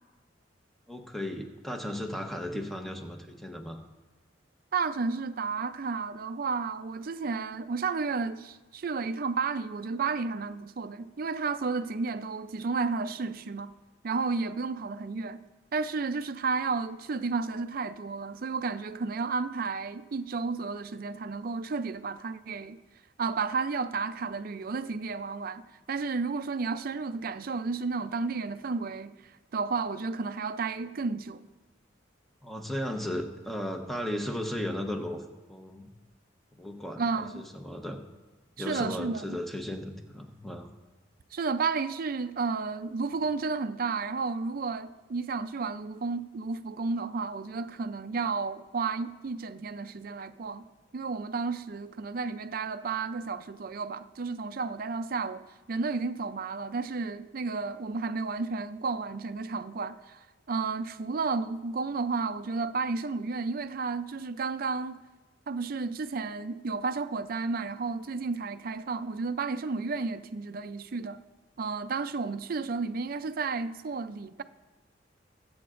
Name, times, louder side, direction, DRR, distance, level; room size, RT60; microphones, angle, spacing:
voice 1, 0.9-3.8 32.4-35.2 35.5-35.9 36.5-38.0 38.6-40.7, left 1 dB, ahead, 0.9 m, -35 dB
voice 2, 4.7-13.7 14.0-15.4 15.7-22.8 23.2-31.4 37.0-37.5 38.6-39.4 41.3-50.7 50.9-55.4 55.7-65.0 65.5-71.2 71.6-74.4, right 4 dB, 50° right, 0.4 m, -32 dB
20.5 x 8.6 x 2.5 m
head